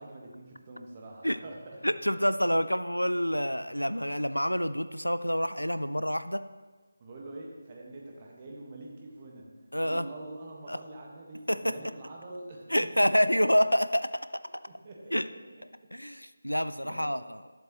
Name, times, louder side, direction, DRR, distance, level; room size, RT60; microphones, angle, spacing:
voice 1, 0.0-1.8 2.1-2.2 7.0-9.5 9.8-12.7 13.0-13.3 14.7-15.6 16.8-17.2, right 2 dB, 25° right, -1 dB, 1.5 m, -45 dB
voice 2, 1.8-6.4 9.7-10.1 10.7-10.8 11.5-11.8 12.7-14.2 15.1-15.3 15.9-17.4, equal, 85° left, 12 dB, 0.5 m, -27 dB
13.0 x 7.4 x 3.1 m, 1.3 s
figure-of-eight pair, 160°, 0 cm